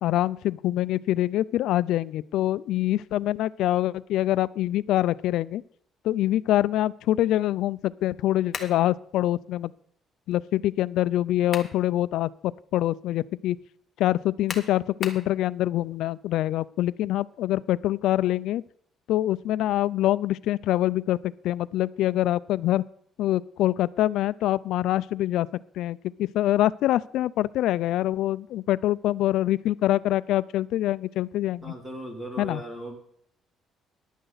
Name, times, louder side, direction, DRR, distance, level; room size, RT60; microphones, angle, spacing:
voice 1, 0.0-5.6 6.0-9.7 10.3-13.6 14.0-18.6 19.1-22.8 23.2-25.5 25.8-31.7 32.4-32.6, left 14 dB, 75° left, 18 dB, 0.4 m, -25 dB
sound 1, 8.5-8.8 11.2-11.8 12.3-12.4 14.5-15.3, left 5 dB, 30° left, 1.4 m, -36 dB
voice 2, 31.6-33.0, right 1 dB, 10° right, 2 dB, 2.7 m, -37 dB
14.5 x 11.0 x 4.0 m, 0.64 s
cardioid pair, 165°, 0 cm